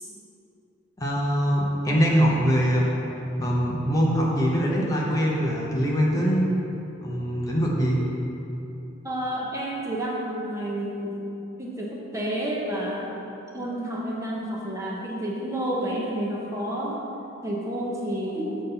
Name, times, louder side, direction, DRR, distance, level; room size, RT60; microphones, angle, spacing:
voice 1, 1.0-2.8 3.2-6.5 7.0-8.0, equal, 15° left, -4 dB, 0.7 m, -23 dB
voice 2, 9.0-11.1 11.6-13.2 13.5-17.0 17.4-18.6, right 1 dB, 15° right, -4 dB, 0.8 m, -30 dB
7.2 x 4.0 x 5.6 m, 3.0 s
head